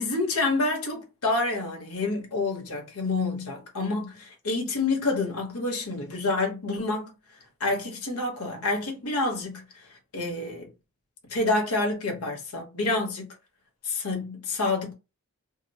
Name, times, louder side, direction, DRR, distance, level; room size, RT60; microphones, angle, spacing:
voice 1, 0.0-7.1 7.6-9.6 10.1-10.7 11.3-13.3 13.8-14.9, left 3 dB, 85° left, 1.0 m, -28 dB
2.9 x 2.0 x 4.0 m
head